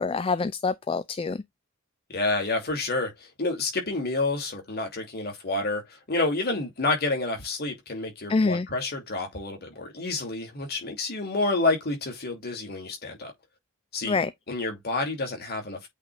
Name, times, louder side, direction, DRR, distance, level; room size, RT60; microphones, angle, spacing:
voice 1, 0.0-1.4 8.3-8.7 14.0-14.3, left 4 dB, 25° left, 0.3 m, -26 dB
voice 2, 2.1-13.3 13.9-14.2 14.5-15.9, left 2 dB, 45° left, 2.5 m, -29 dB
8.2 x 3.5 x 3.3 m
head